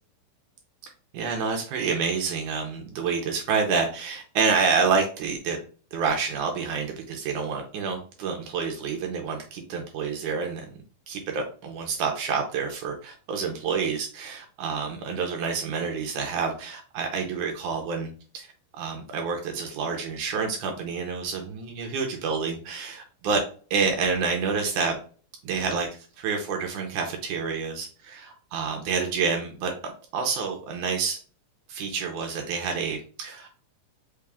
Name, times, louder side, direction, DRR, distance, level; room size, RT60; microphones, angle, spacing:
voice 1, 1.1-5.6 5.9-10.6 11.1-23.4 23.7-25.0 25.4-25.9 26.2-29.7 30.1-31.2 31.7-33.5, right 5 dB, 75° right, 2 dB, 2.1 m, -28 dB
5.3 x 2.4 x 3.4 m, 0.39 s
omnidirectional pair, 3.9 m